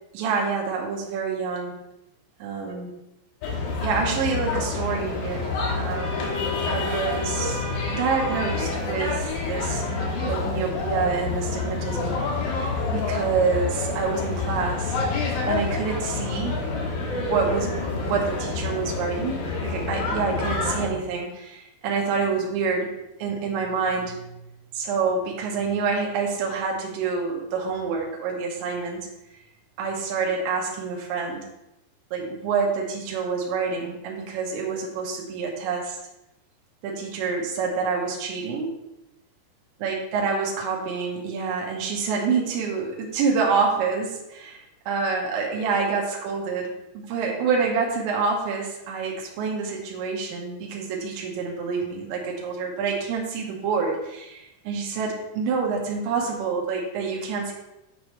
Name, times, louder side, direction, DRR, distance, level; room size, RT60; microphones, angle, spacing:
voice 1, 0.1-1.8 2.4-2.9 3.8-6.3 6.7-15.0 15.5-16.6 17.2-17.7 18.0-22.9 23.2-24.3 24.7-29.0 29.8-31.4 32.1-36.0 36.8-38.7 39.8-57.5, right 5 dB, 85° right, -1 dB, 3.4 m, -27 dB
sound 1, 3.4-20.9, left 3 dB, 90° left, 3.7 m, -28 dB
9.7 x 4.9 x 3.1 m, 0.90 s
omnidirectional pair, 5.1 m